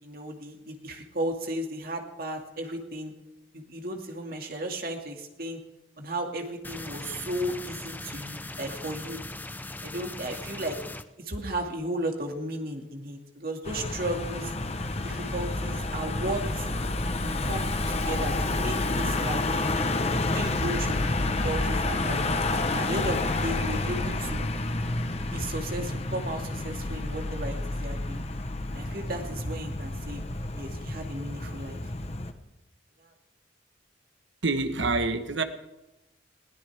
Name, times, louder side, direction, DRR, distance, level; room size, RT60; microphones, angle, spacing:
voice 1, 0.0-3.1 3.5-5.6 6.0-9.2 9.8-10.8 11.2-14.5 15.0-16.7 17.2-22.2 22.7-24.5 25.3-28.3 28.7-30.2 30.5-31.9 33.0-33.1, right 1 dB, 50° right, 2 dB, 2.3 m, -35 dB
sound 1, 6.6-11.0, left 2 dB, 10° left, 0.5 m, -39 dB
Car passing by / Engine, 13.7-32.3, left 2 dB, 35° left, 1.0 m, -29 dB
voice 2, 34.4-35.4, right 3 dB, 75° right, 8 dB, 1.3 m, -26 dB
21.0 x 16.5 x 3.5 m, 0.97 s
head